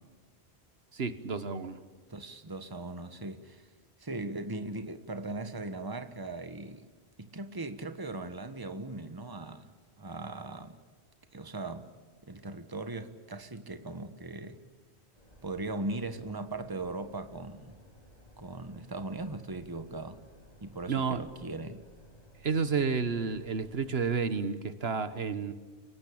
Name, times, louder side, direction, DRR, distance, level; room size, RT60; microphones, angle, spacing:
voice 1, 0.9-1.8 20.9-21.2 22.4-25.5, right 5 dB, 70° right, 1.4 m, -30 dB
voice 2, 2.1-3.7 4.0-6.9 7.2-10.8 11.3-11.9 12.2-14.6 15.4-17.8 18.4-20.2 20.6-21.8, right 2 dB, 20° right, 1.3 m, -39 dB
sound 1, 15.1-24.1, equal, 35° left, 5.0 m, -57 dB
29.5 x 18.5 x 8.7 m
omnidirectional pair, 1.1 m